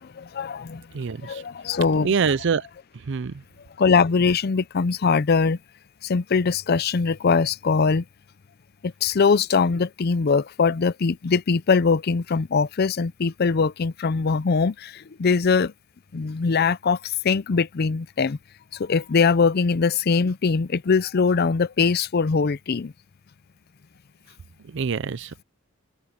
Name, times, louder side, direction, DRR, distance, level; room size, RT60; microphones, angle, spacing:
voice 1, 0.0-2.1 3.8-5.6 6.0-8.0 8.8-15.7 16.1-18.4 18.7-22.9, left 5 dB, 50° left, 0.5 m, -22 dB
voice 2, 0.9-1.4 2.0-2.6 3.1-3.4 24.7-25.4, right 5 dB, 60° right, 0.5 m, -25 dB
open air
head